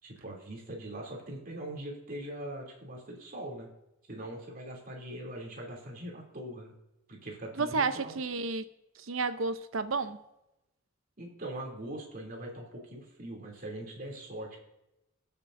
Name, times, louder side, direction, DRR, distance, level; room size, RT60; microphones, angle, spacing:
voice 1, 0.0-3.7 4.1-6.7 7.1-8.2 11.2-14.6, right 1 dB, 45° right, 3.0 m, -42 dB
voice 2, 7.6-8.6 9.0-10.2, right 4 dB, 75° right, 0.7 m, -31 dB
20.0 x 6.9 x 2.6 m
head